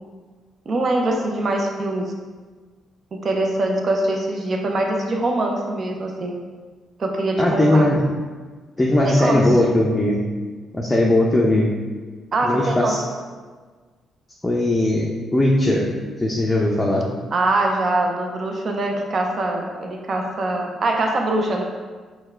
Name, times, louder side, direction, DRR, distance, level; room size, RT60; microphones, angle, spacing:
voice 1, 0.7-2.1 3.1-6.3 7.0-7.9 9.0-9.6 9.9-10.0 12.3-13.0 17.3-21.6, right 2 dB, 45° right, 2 dB, 0.5 m, -23 dB
voice 2, 7.4-8.1 8.8-10.2 10.7-11.7 12.4-13.0 14.4-15.9 16.2-17.1, left 1 dB, 15° left, -2 dB, 0.5 m, -19 dB
4.5 x 2.2 x 4.4 m, 1.4 s
cardioid pair, 90°, 0 cm